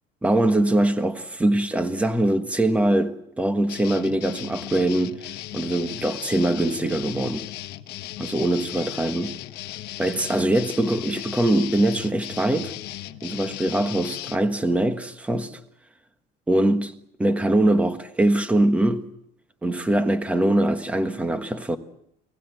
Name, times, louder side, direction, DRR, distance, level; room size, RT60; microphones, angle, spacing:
voice 1, 0.2-7.5 8.2-9.4 10.0-12.7 13.2-15.6 16.5-16.9 17.2-19.1 19.6-21.8, right 1 dB, 5° right, 1.4 m, -22 dB
sound 1, 3.7-14.4, left 15 dB, 55° left, 1.2 m, -36 dB
29.5 x 19.5 x 7.8 m
cardioid pair, 160°, 19 cm